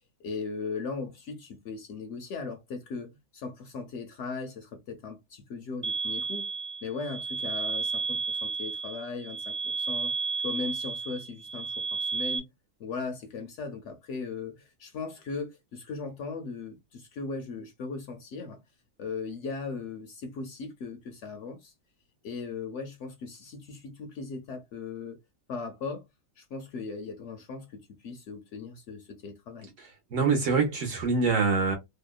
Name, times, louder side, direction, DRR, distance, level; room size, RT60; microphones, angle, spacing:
voice 1, 0.2-6.5 6.8-10.1 10.4-12.5 12.8-18.6 19.0-21.7 22.2-25.2 25.5-26.0 26.4-29.7, left 4 dB, 65° left, 0.8 m, -38 dB
sound 1, 5.8-12.4, right 4 dB, 35° right, 0.5 m, -32 dB
voice 2, 29.8-31.8, right 4 dB, 70° right, 0.9 m, -25 dB
2.8 x 2.0 x 2.3 m
omnidirectional pair, 1.4 m